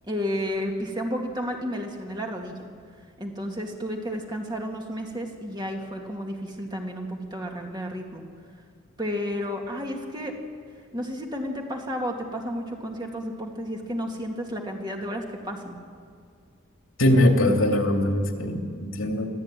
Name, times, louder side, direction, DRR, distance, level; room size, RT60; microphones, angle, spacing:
voice 1, 0.1-2.7 3.2-8.2 9.0-10.3 10.9-15.8, equal, 20° right, 1 dB, 2.4 m, -32 dB
voice 2, 17.0-19.3, left 1 dB, 80° left, 2 dB, 2.8 m, -21 dB
24.5 x 15.0 x 9.2 m, 2.1 s
head